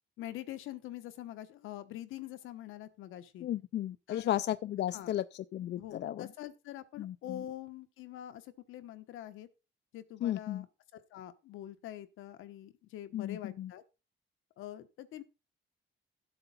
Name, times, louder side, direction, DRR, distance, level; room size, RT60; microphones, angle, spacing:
voice 1, 0.2-3.5 4.1-4.3 4.9-5.2 5.8-9.5 9.9-10.6 10.9-13.8 14.6-15.2, left 13 dB, 90° left, 1.2 m, -45 dB
voice 2, 3.4-6.3 7.0-7.4 10.2-10.7 13.1-13.7, left 12 dB, 60° left, 0.5 m, -34 dB
13.0 x 7.9 x 4.1 m
cardioid pair, 90°, 20 cm